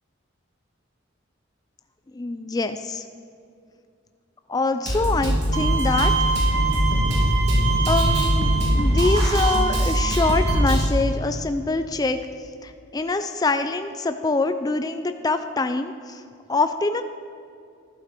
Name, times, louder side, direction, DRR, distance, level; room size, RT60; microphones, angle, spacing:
voice 1, 2.1-3.0 4.5-6.1 7.9-16.2 16.5-17.0, left 3 dB, 20° left, 9 dB, 0.3 m, -25 dB
Drum kit, 4.9-10.9, equal, 55° right, 2.8 m, -21 dB
Bowed string instrument, 5.5-10.5, right 6 dB, 85° right, 2.0 m, -27 dB
12.0 x 11.5 x 4.4 m, 2.4 s
head